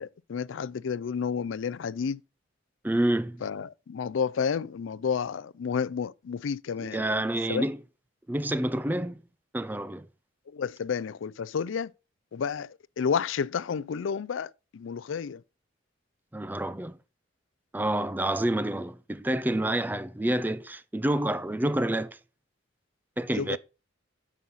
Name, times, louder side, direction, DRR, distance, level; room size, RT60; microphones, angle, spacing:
voice 1, 0.0-2.2 3.4-7.0 7.5-7.6 10.5-11.9 12.3-15.4 23.3-23.6, left 6 dB, 85° left, 0.4 m, -31 dB
voice 2, 2.8-3.4 6.8-7.8 8.3-9.2 9.5-10.1 16.3-17.0 17.7-22.2 23.2-23.6, right 1 dB, 10° right, 0.5 m, -28 dB
9.4 x 6.3 x 4.0 m
head